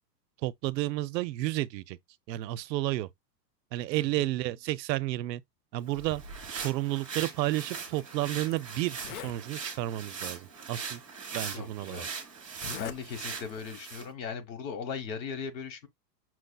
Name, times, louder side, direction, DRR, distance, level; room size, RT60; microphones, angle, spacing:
voice 1, 0.4-2.0 2.3-3.1 3.7-5.4 5.7-6.2 6.5-11.0 11.3-12.1, right 16 dB, 80° right, 0.6 m, -31 dB
voice 2, 4.0-4.3 11.5-12.1 12.8-15.9, left 6 dB, 85° left, 1.3 m, -38 dB
sound 1, 5.9-14.1, right 5 dB, 25° right, 0.3 m, -40 dB
Zipper (clothing), 7.8-8.0 8.5-8.6 8.9-9.4 10.3-10.4 11.3-11.4 12.5-13.0 13.3-13.7, left 8 dB, 60° left, 0.6 m, -42 dB
5.9 x 2.6 x 2.2 m
supercardioid pair, 180°, 50 cm